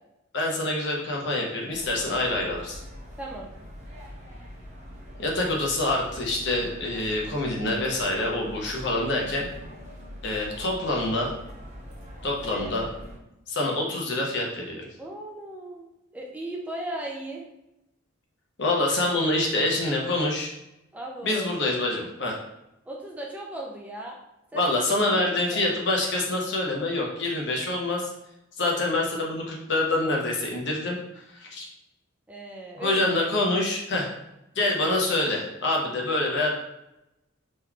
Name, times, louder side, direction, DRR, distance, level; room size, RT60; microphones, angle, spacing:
voice 1, 0.3-2.8 5.2-9.5 10.2-11.3 12.2-12.9 13.5-14.9 18.6-20.5 21.2-22.4 24.5-28.1 28.6-31.7 32.8-34.1 34.6-36.5, left 2 dB, 60° left, -1 dB, 0.7 m, -26 dB
sound 1, 1.7-13.2, equal, 35° right, 0.7 m, -43 dB
voice 2, 15.0-15.9 16.1-17.4 20.9-21.5 22.9-24.2 24.5-24.8 25.2-25.6 32.3-33.1, right 1 dB, 5° right, -1 dB, 0.3 m, -37 dB
3.6 x 3.0 x 2.3 m, 0.90 s
head